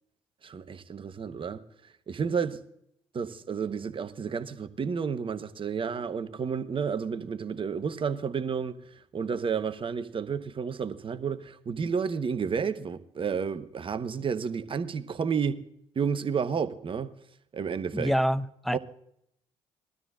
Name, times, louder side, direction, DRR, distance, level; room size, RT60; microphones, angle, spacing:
voice 1, 0.4-1.6 2.1-2.6 3.1-8.8 9.1-15.6 15.9-17.1 17.5-18.1 18.7-18.8, right 6 dB, 40° right, 1.0 m, -31 dB
voice 2, 17.9-18.8, equal, ahead, 0.6 m, -26 dB
21.0 x 12.5 x 2.4 m
hypercardioid pair, 55°, 14 cm